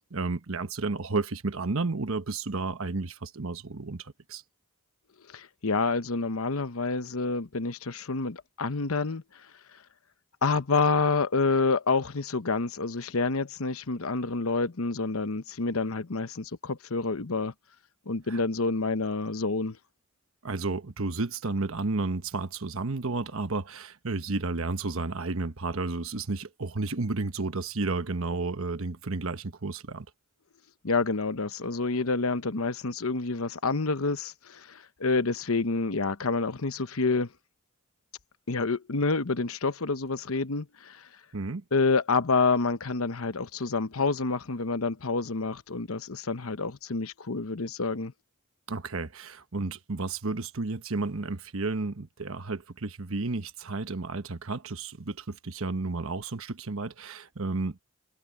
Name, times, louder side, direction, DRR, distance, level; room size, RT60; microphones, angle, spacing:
voice 1, 0.1-4.4 18.3-18.4 20.4-30.1 41.3-41.6 48.7-57.8, right 3 dB, 75° right, 1.1 m, -32 dB
voice 2, 5.3-9.2 10.4-17.5 18.1-19.8 30.8-37.3 38.5-41.1 41.7-48.1, left 4 dB, 80° left, 1.0 m, -28 dB
head